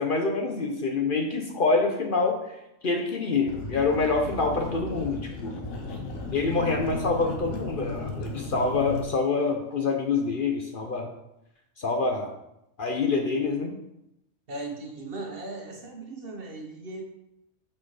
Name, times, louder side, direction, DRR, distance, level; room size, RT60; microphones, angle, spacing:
voice 1, 0.0-2.4 2.8-5.5 6.3-11.1 11.8-12.3 12.8-13.7, left 4 dB, 50° left, 3 dB, 0.7 m, -26 dB
sound 1, 3.5-9.0, left 3 dB, 70° left, 1.3 m, -35 dB
voice 2, 14.5-17.0, right 2 dB, 45° right, 1 dB, 1.3 m, -37 dB
6.1 x 4.4 x 4.8 m, 0.84 s
omnidirectional pair, 1.5 m